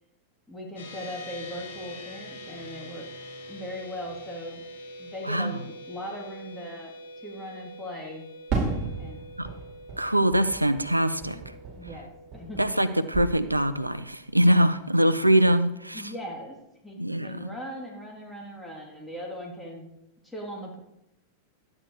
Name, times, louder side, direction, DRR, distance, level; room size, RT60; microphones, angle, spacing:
voice 1, 0.5-3.1 3.5-4.6 5.0-6.9 7.2-8.2 9.0-9.2 11.8-12.6 15.9-16.6 16.8-19.9 20.2-20.8, equal, 5° left, -2 dB, 2.9 m, -39 dB
sound 1, 0.8-14.4, left 1 dB, 60° left, 5.0 m, -45 dB
voice 2, 5.2-5.6 9.4-9.5 10.0-11.4 12.6-16.1 17.0-17.5, equal, 85° right, 12 dB, 0.7 m, -23 dB
Fireworks, 8.5-12.9 13.1-13.9, right 4 dB, 35° right, 5.4 m, -34 dB
13.0 x 9.7 x 4.8 m, 0.85 s
figure-of-eight pair, 90°, 0 cm